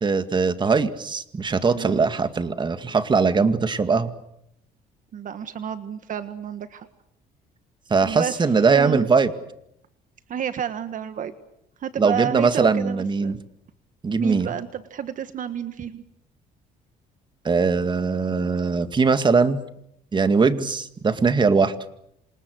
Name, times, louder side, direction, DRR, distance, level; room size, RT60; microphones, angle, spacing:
voice 1, 0.0-4.1 7.9-9.3 12.0-13.4 14.0-14.5 17.4-19.6 20.1-21.8, right 4 dB, 25° right, 10 dB, 2.2 m, -21 dB
voice 2, 5.1-6.9 8.0-8.3 8.7-9.1 10.3-11.3 11.8-13.4 14.2-16.0, right 9 dB, 50° right, 11 dB, 1.6 m, -30 dB
28.0 x 27.0 x 6.5 m, 0.75 s
cardioid pair, 110°, 17 cm